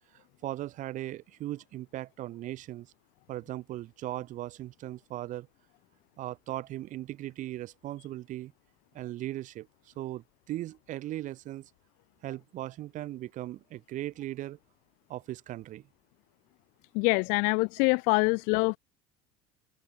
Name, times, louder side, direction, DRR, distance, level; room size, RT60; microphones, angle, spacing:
voice 1, 0.1-2.9 3.3-5.5 6.2-8.5 8.9-11.7 12.2-14.6 15.1-15.9, right 14 dB, 55° right, 2.5 m, -38 dB
voice 2, 16.9-18.8, left 32 dB, 65° left, 0.7 m, -25 dB
open air
hypercardioid pair, 75°, 16 cm